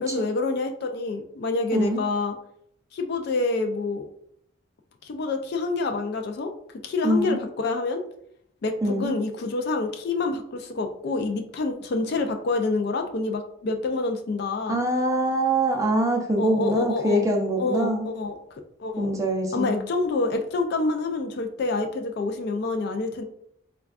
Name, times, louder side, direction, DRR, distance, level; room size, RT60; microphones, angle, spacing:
voice 1, 0.0-2.4 2.9-4.0 5.0-6.5 6.8-8.0 8.6-14.8 16.4-17.3 17.6-18.4 18.8-19.2 19.5-23.2, left 3 dB, 50° left, 5 dB, 0.3 m, -27 dB
voice 2, 1.7-2.0 7.0-7.4 8.8-9.1 14.7-18.1 19.0-19.9, right 1 dB, 15° right, 1 dB, 0.4 m, -24 dB
4.2 x 2.3 x 2.4 m, 0.70 s
head